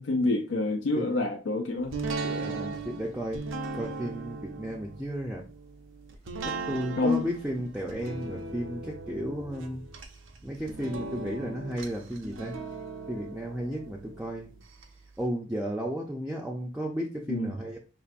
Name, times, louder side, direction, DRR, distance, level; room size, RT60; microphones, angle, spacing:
voice 1, 0.0-1.9 7.0-7.2 17.3-17.5, left 2 dB, 80° left, 0.4 m, -27 dB
sound 1, 1.9-14.8 15.2-15.3, right 3 dB, 85° right, 0.6 m, -38 dB
voice 2, 2.2-3.4 3.7-5.5 6.4-9.8 10.4-12.6 13.1-14.5 15.2-17.8, equal, 5° right, 0.4 m, -34 dB
5.3 x 2.5 x 2.5 m
head